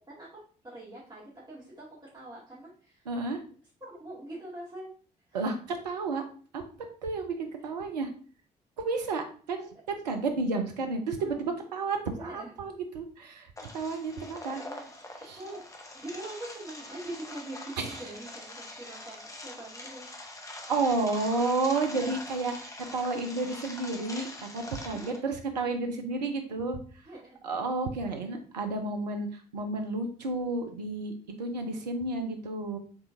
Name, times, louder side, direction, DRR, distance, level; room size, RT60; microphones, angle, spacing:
voice 1, 0.6-3.1 3.8-4.9 5.3-5.4 7.6-7.7 11.2-11.4 12.2-12.5 14.5-14.9 15.3-15.7 15.9-20.1 24.9-25.3 27.0-27.4, right 1 dB, 20° right, -8 dB, 2.3 m, -43 dB
voice 2, 3.1-3.4 5.3-6.2 6.5-6.6 7.0-8.1 8.8-14.6 15.2-15.4 17.8-18.0 20.7-24.3 24.5-26.8 27.4-32.8, right 3 dB, 80° right, 5 dB, 0.5 m, -31 dB
sound 1, 13.6-25.2, left 1 dB, 15° left, 0.8 m, -44 dB
4.8 x 3.7 x 2.6 m, 0.42 s
figure-of-eight pair, 40°, 21 cm